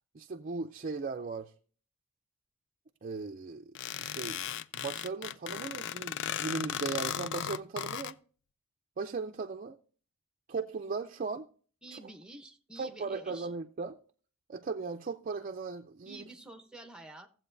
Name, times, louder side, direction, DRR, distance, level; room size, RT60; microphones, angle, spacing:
voice 1, 0.1-1.5 3.0-4.4 4.7-8.2 9.0-9.8 10.5-11.5 12.8-14.0 14.5-16.2, right 4 dB, 40° right, 0.5 m, -37 dB
sound 1, 3.8-8.1, left 10 dB, 60° left, 0.4 m, -36 dB
voice 2, 11.8-13.5 16.1-17.3, right 2 dB, 5° right, 0.9 m, -49 dB
16.5 x 7.7 x 2.6 m
head